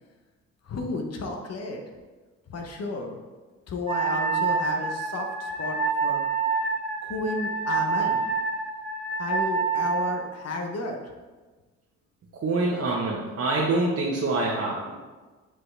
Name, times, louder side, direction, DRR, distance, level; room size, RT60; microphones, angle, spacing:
voice 1, 0.7-1.8 2.5-3.2 3.7-6.2 7.0-8.3 9.2-11.0, left 2 dB, 55° left, 3 dB, 0.9 m, -32 dB
Wind instrument woodwind instrument, 3.9-10.2, right 5 dB, 10° right, 1.7 m, -27 dB
voice 2, 12.4-14.9, right 2 dB, 50° right, -4 dB, 1.0 m, -25 dB
5.9 x 4.8 x 3.3 m, 1.3 s
cardioid pair, 90°, 30 cm